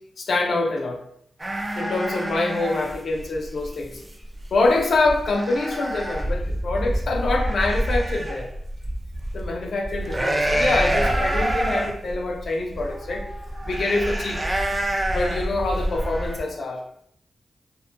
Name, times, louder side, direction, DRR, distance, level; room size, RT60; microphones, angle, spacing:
voice 1, 0.2-1.0 1.8-4.0 4.5-8.5 9.3-13.3 13.7-14.4 15.1-16.9, left 2 dB, 70° left, 2 dB, 0.4 m, -25 dB
sound 1, 1.4-16.4, right 1 dB, 20° right, 0.4 m, -27 dB
2.6 x 2.2 x 2.4 m, 0.68 s
cardioid pair, 65°, 0 cm